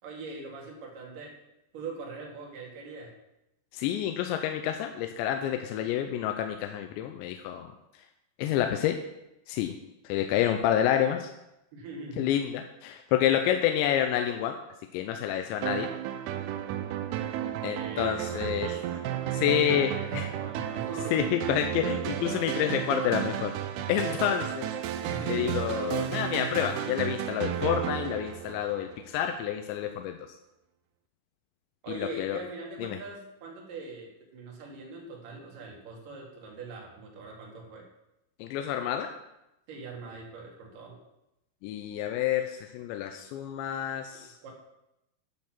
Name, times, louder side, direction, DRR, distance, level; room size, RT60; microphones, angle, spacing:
voice 1, 0.0-1.4 1.7-3.1 11.7-12.3 16.7-21.3 25.0-25.6 31.8-37.8 39.7-41.0 44.1-44.5, right 3 dB, 55° right, -1 dB, 3.2 m, -42 dB
voice 2, 3.7-7.7 8.4-9.0 9.5-9.7 10.0-11.3 12.2-14.6 14.9-15.9 17.6-18.8 19.3-20.3 21.1-23.5 23.9-24.7 25.3-30.2 31.9-32.4 32.8-33.0 38.4-39.1 41.6-44.5, left 10 dB, 85° left, 5 dB, 2.9 m, -28 dB
sound 1, 15.6-29.2, right 11 dB, 90° right, 2.3 m, -33 dB
10.5 x 6.6 x 6.0 m, 0.89 s
omnidirectional pair, 5.2 m